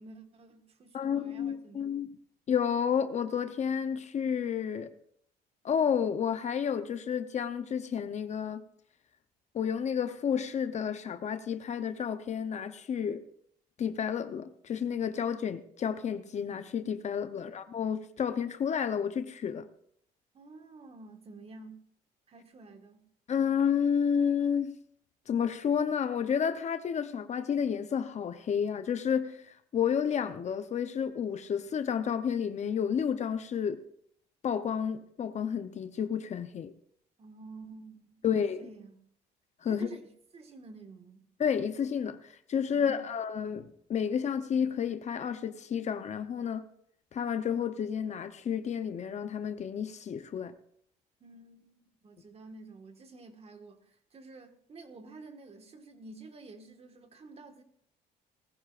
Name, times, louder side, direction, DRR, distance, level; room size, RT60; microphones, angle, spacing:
voice 1, 0.0-1.9 17.3-17.6 20.3-21.8 22.3-23.0 37.2-39.0 39.6-41.3 42.7-43.1 51.2-51.7 52.0-57.6, right 3 dB, 35° right, 1.7 m, -50 dB
voice 2, 0.9-2.2 2.5-4.9 5.6-8.6 9.5-13.2 13.8-19.7 23.3-24.8 25.3-33.8 34.4-36.7 38.2-38.7 39.6-39.9 41.4-46.7 47.1-50.5, left 7 dB, 45° left, 0.8 m, -31 dB
19.0 x 14.5 x 2.5 m
cardioid pair, 110°, 17 cm